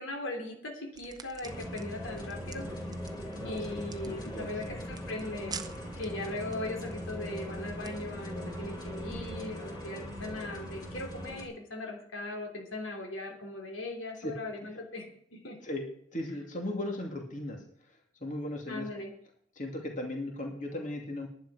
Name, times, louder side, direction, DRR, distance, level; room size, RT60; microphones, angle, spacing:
voice 1, 0.0-2.7 3.4-5.6 6.0-15.6 18.7-19.1, left 2 dB, 85° left, 2 dB, 3.3 m, -39 dB
sound 1, 0.9-8.3, right 5 dB, 20° right, 0.8 m, -49 dB
sound 2, 1.4-11.5, equal, 20° left, 3.2 m, -40 dB
voice 2, 3.4-4.8 14.2-14.3 14.6-14.7 15.6-15.8 16.1-18.9 19.5-21.3, left 1 dB, 40° left, 1 dB, 2.5 m, -37 dB
sound 3, 3.5-10.7, left 1 dB, 60° left, 5.6 m, -60 dB
11.5 x 10.5 x 6.2 m, 0.67 s
head